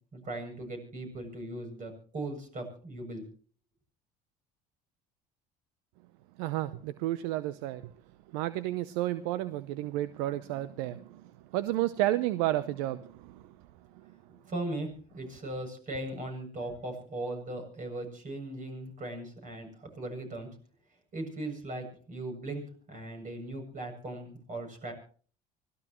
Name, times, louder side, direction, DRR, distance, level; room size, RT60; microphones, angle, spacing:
voice 1, 0.1-3.2 14.5-20.5 21.1-24.9, right 1 dB, 40° right, 7.8 m, -38 dB
voice 2, 6.4-7.8 8.3-11.2 11.5-13.4, right 15 dB, 75° right, 0.7 m, -31 dB
25.0 x 16.5 x 3.1 m
hypercardioid pair, 65°, 19 cm